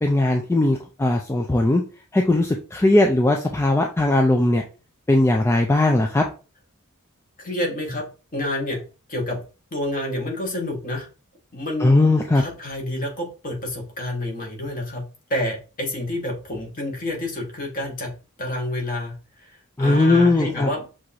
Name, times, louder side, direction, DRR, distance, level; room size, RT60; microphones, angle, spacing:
voice 1, 0.0-1.8 2.1-4.6 5.1-6.2 11.8-12.4 19.8-20.7, left 2 dB, 10° left, 2 dB, 0.3 m, -19 dB
voice 2, 7.4-8.0 8.3-8.8 9.1-9.4 9.7-11.1 11.5-15.0 15.3-18.1 18.4-19.1 19.8-20.9, left 1 dB, 40° left, 0 dB, 1.3 m, -28 dB
6.2 x 2.5 x 2.8 m, 0.34 s
head